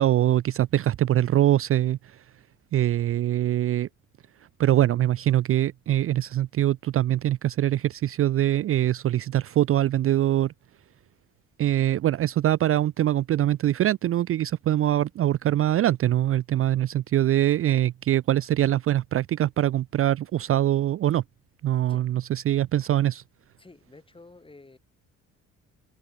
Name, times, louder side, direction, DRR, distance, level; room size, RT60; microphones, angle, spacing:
voice 1, 0.0-2.3 2.7-3.9 4.6-10.5 11.6-21.2 21.6-23.2, right 13 dB, 50° right, 0.4 m, -23 dB
voice 2, 23.6-24.8, left 3 dB, 15° left, 2.6 m, -50 dB
cardioid pair, 90°, 30 cm